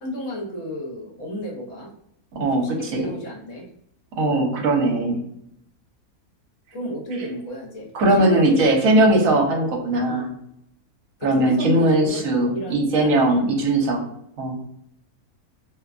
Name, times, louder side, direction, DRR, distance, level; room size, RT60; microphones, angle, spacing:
voice 1, 0.0-1.9 2.6-3.6 6.7-7.9 8.2-8.5 10.1-10.3 11.2-12.2 12.5-12.7 13.0-13.2, left 1 dB, 60° left, -3 dB, 1.1 m, -32 dB
voice 2, 2.3-3.1 4.2-5.2 7.9-10.3 11.2-14.0 14.4-14.6, right 1 dB, 65° right, 1 dB, 1.0 m, -19 dB
2.7 x 2.2 x 2.3 m, 0.73 s
omnidirectional pair, 1.6 m